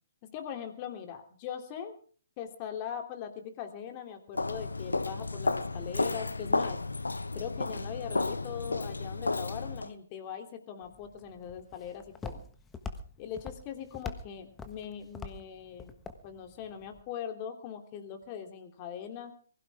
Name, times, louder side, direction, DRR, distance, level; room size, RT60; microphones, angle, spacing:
voice 1, 0.3-2.0 2.4-6.8 7.3-12.4 13.2-15.9 16.2-19.3, left 8 dB, 35° left, 5 dB, 3.0 m, -41 dB
Walk footsteps, 4.3-9.9, left 3 dB, 85° left, 1.1 m, -32 dB
Walk footsteps 2, 10.8-17.0, left 4 dB, 10° left, 1.3 m, -45 dB
23.0 x 16.0 x 3.6 m, 0.43 s
figure-of-eight pair, 135°, 0 cm